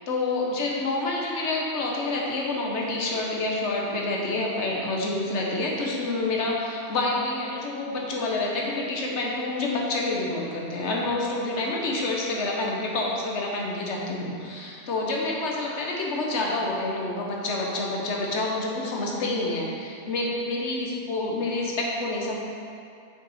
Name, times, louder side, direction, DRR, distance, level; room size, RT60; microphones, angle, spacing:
voice 1, 0.1-22.4, left 2 dB, 85° left, -2 dB, 1.2 m, -28 dB
6.5 x 5.7 x 4.1 m, 2.4 s
omnidirectional pair, 1.1 m